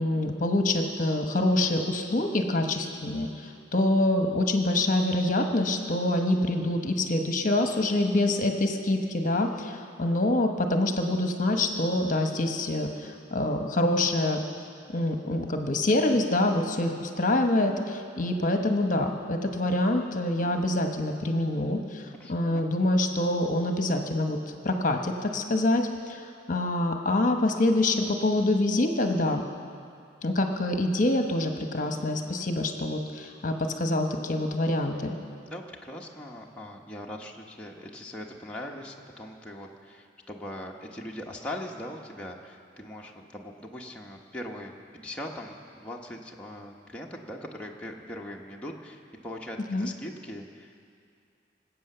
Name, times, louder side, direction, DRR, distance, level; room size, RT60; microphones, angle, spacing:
voice 1, 0.0-14.4 14.9-24.4 24.6-29.4 30.2-35.2 49.7-49.9, left 1 dB, 45° left, 4 dB, 1.0 m, -26 dB
voice 2, 22.1-22.7 35.5-50.9, left 1 dB, 5° left, -2 dB, 1.0 m, -41 dB
25.0 x 8.4 x 6.7 m, 2.4 s
head